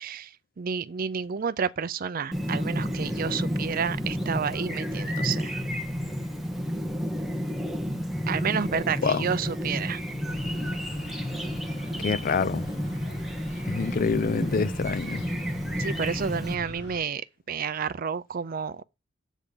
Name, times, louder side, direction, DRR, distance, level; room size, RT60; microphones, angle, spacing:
voice 1, 0.0-5.5 8.3-10.0 15.8-17.2 17.5-18.8, right 6 dB, 50° right, 0.5 m, -30 dB
Chirp tweet, 2.3-16.5, equal, ahead, 1.0 m, -31 dB
sound 1, 10.3-17.0, left 2 dB, 65° left, 5.3 m, -42 dB
voice 2, 12.0-12.7 13.7-15.2, left 5 dB, 45° left, 0.4 m, -26 dB
8.2 x 3.8 x 6.7 m
head